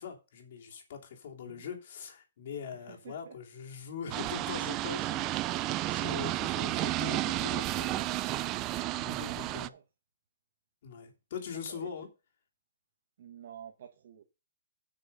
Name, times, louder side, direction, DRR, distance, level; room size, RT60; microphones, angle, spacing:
voice 1, 0.0-8.0 8.9-9.7 10.8-12.1, left 6 dB, 55° left, 2.9 m, -42 dB
voice 2, 2.7-3.4 9.1-9.8 11.5-12.1 13.2-14.2, right 9 dB, 60° right, 1.1 m, -51 dB
sound 1, 4.1-9.7, right 16 dB, 25° right, 0.4 m, -32 dB
8.7 x 6.4 x 5.4 m
hypercardioid pair, 150°, 0 cm